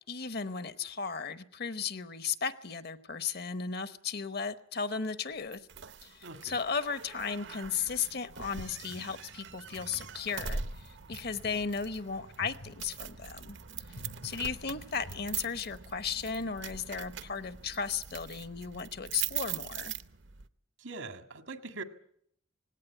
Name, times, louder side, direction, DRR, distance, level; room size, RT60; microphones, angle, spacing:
voice 1, 0.0-5.6 6.0-13.6 14.2-19.9, left 6 dB, 55° left, 13 dB, 1.0 m, -35 dB
sound 1, 5.5-20.5, right 7 dB, 65° right, 0.8 m, -42 dB
voice 2, 6.2-6.6 20.8-21.8, right 3 dB, 85° right, 8 dB, 1.9 m, -42 dB
sound 2, 8.5-15.2, equal, 85° left, 6.9 m, -51 dB
19.0 x 17.0 x 10.0 m, 0.67 s
head